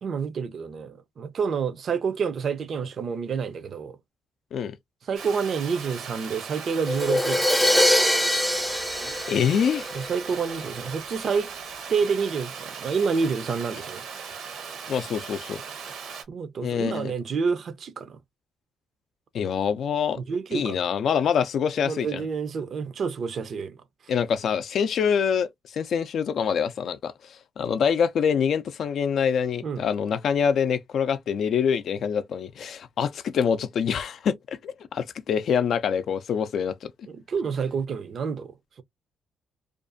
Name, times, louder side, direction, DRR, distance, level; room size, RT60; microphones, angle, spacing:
voice 1, 0.0-4.0 5.1-7.7 9.9-11.5 11.9-14.0 16.3-18.2 20.2-20.8 21.9-23.8 29.6-29.9 37.1-38.5, right 5 dB, 55° right, 0.5 m, -28 dB
Water, 5.1-16.2, right 6 dB, 75° right, 0.8 m, -38 dB
Crash cymbal, 6.9-10.6, left 1 dB, ahead, 0.5 m, -23 dB
voice 2, 9.3-9.9 14.9-15.6 16.6-17.1 19.3-20.2 20.5-22.2 24.1-27.1 27.6-36.9, left 7 dB, 65° left, 0.4 m, -25 dB
2.5 x 2.4 x 2.5 m
cardioid pair, 90°, 0 cm